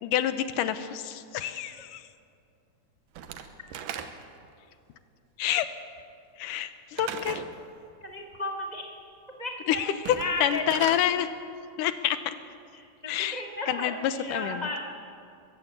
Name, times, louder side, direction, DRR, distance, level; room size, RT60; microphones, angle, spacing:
voice 1, 0.0-2.0 5.4-5.7 6.4-7.4 9.7-11.3 11.8-12.4 13.1-14.7, left 11 dB, 90° left, 11 dB, 2.5 m, -28 dB
Slam / Wood, 3.2-4.5 7.0-7.5 9.9-11.1, right 8 dB, 85° right, 2.6 m, -38 dB
voice 2, 8.0-8.9 9.4-9.8 10.2-10.8 12.7-14.8, left 2 dB, 25° right, 1 dB, 0.9 m, -34 dB
22.0 x 15.5 x 8.2 m, 2.4 s
omnidirectional pair, 3.6 m